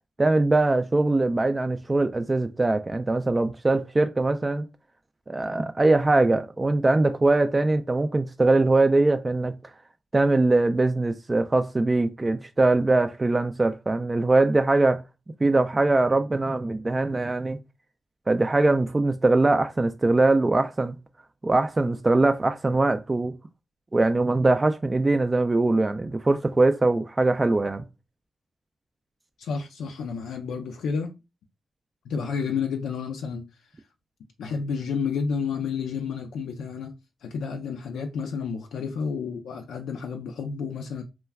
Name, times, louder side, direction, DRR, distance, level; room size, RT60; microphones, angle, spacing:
voice 1, 0.2-4.6 5.3-9.5 10.1-15.0 15.4-17.6 18.3-21.0 21.4-23.4 23.9-27.8, right 2 dB, 30° right, 0.3 m, -22 dB
voice 2, 29.4-31.1 32.1-33.4 34.4-36.9 37.2-41.0, left 5 dB, 80° left, 0.4 m, -30 dB
2.2 x 2.2 x 3.4 m
supercardioid pair, 45°, 0 cm